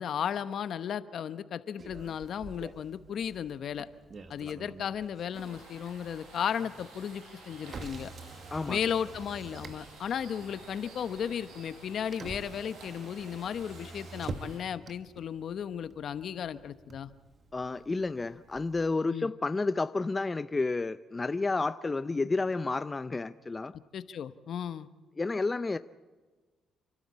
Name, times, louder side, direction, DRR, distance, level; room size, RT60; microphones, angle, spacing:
voice 1, 0.0-3.9 4.3-8.1 8.7-17.1 19.1-19.3 23.7-24.9, left 8 dB, 65° left, 13 dB, 1.0 m, -35 dB
Motor vehicle (road), 1.8-18.9, right 4 dB, 45° right, 1.4 m, -48 dB
sound 1, 5.3-14.6, right 2 dB, 85° right, 6.0 m, -52 dB
voice 2, 8.5-8.9 17.5-23.7 25.2-25.8, left 3 dB, 25° left, 13 dB, 0.5 m, -31 dB
28.0 x 12.5 x 8.6 m, 1.3 s
cardioid pair, 90°, 0 cm